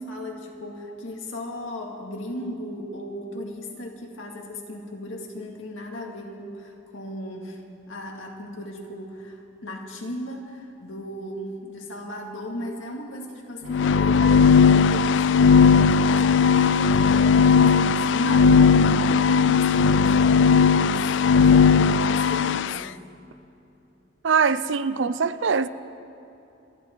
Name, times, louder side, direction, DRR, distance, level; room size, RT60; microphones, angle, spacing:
voice 1, 0.0-7.6 7.9-23.0, left 1 dB, 90° left, 2.2 m, -36 dB
sound 1, 13.7-22.8, left 5 dB, 65° left, 0.3 m, -17 dB
voice 2, 24.2-25.7, right 5 dB, 70° right, 0.5 m, -22 dB
27.0 x 11.0 x 4.6 m
head